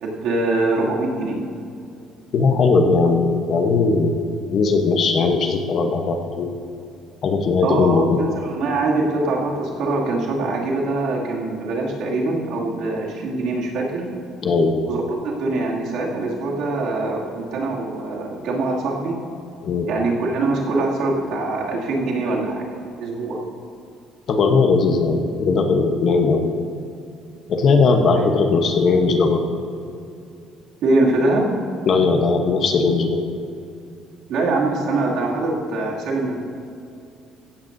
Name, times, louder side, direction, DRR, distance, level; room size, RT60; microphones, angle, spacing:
voice 1, 0.0-1.4 7.6-14.1 14.9-19.2 19.9-22.7 23.0-23.4 28.1-28.2 30.8-31.5 34.3-36.3, right 2 dB, 60° right, -3 dB, 2.5 m, -23 dB
voice 2, 2.3-4.2 4.5-6.5 7.2-8.2 14.4-14.8 19.6-19.9 24.3-26.5 27.5-29.4 31.9-33.2, left 4 dB, 40° left, 4 dB, 1.0 m, -18 dB
16.5 x 13.5 x 2.7 m, 2.5 s
cardioid pair, 175°, 0 cm